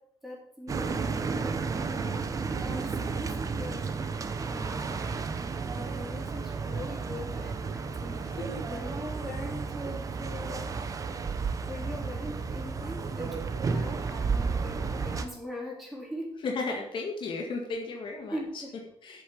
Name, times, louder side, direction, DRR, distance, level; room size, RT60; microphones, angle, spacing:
voice 1, 0.2-2.2 2.6-3.9 4.5-5.2 5.6-8.2 8.7-10.8 11.7-16.3 18.3-18.7, left 1 dB, ahead, -3 dB, 3.9 m, -41 dB
sound 1, 0.7-15.3, right 4 dB, 30° right, 0.9 m, -32 dB
voice 2, 8.2-8.6 16.4-19.2, left 3 dB, 50° left, 1 dB, 1.9 m, -35 dB
8.2 x 7.2 x 7.5 m, 0.74 s
cardioid pair, 140°, 10 cm